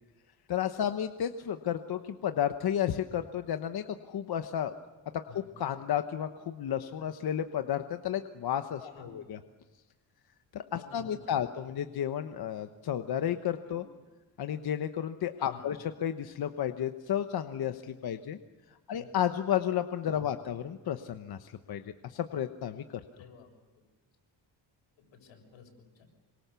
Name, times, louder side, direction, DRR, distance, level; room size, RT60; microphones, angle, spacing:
voice 1, 0.5-4.7 5.3-9.4 10.5-13.8 14.4-18.4 18.9-22.8, left 10 dB, 55° left, 8 dB, 1.2 m, -32 dB
voice 2, 8.8-9.2 10.7-11.4 13.7-14.0 15.4-15.7 18.9-19.1 20.1-20.2 23.1-23.5 25.1-26.1, left 6 dB, 90° left, 3 dB, 6.9 m, -51 dB
26.5 x 24.5 x 7.0 m, 1.2 s
cardioid pair, 145°, 46 cm